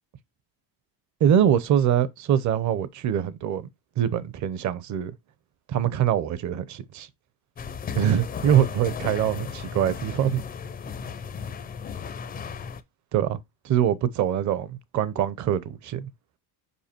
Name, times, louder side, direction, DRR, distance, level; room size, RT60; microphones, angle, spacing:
voice 1, 1.2-3.7 4.0-5.1 5.7-7.1 8.0-10.4 13.1-13.4 13.6-16.1, right 10 dB, 40° right, 0.7 m, -23 dB
sound 1, 7.6-12.8, left 6 dB, 20° left, 0.5 m, -35 dB
5.5 x 4.8 x 4.3 m
cardioid pair, 135°, 46 cm